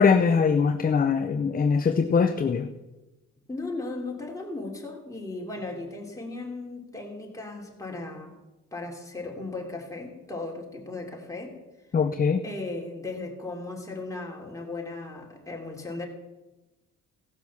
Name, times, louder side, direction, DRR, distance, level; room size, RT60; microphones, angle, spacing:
voice 1, 0.0-2.7 11.9-12.4, left 5 dB, 30° left, 8 dB, 0.7 m, -22 dB
voice 2, 3.5-8.4 8.7-11.6 12.4-16.1, left 2 dB, 10° left, -1 dB, 3.0 m, -36 dB
16.5 x 6.1 x 7.2 m, 1.1 s
cardioid pair, 90°, 30 cm